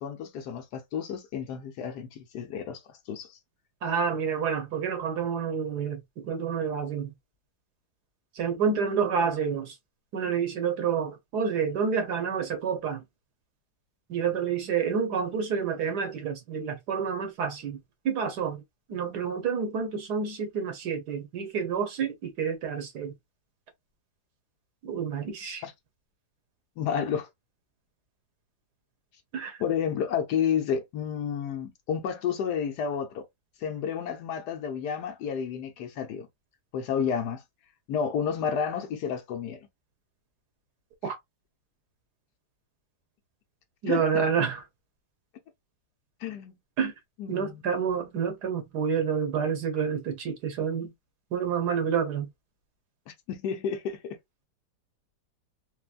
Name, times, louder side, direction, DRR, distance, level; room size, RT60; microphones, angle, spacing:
voice 1, 0.0-3.4 25.6-25.7 26.8-27.3 29.6-33.2 33.6-36.3 36.7-37.4 37.9-39.6 41.0-41.1 43.9-44.2 46.2-46.6 47.2-47.6 53.3-54.2, left 7 dB, 70° left, 1.2 m, -31 dB
voice 2, 3.8-7.1 8.4-9.7 10.1-13.0 14.1-17.8 18.0-18.6 18.9-23.1 24.8-25.6 29.3-29.6 41.0-41.1 43.8-44.6 46.8-46.9 47.3-50.9 51.3-52.3, right 6 dB, 65° right, 1.4 m, -28 dB
4.3 x 2.1 x 2.4 m
omnidirectional pair, 1.9 m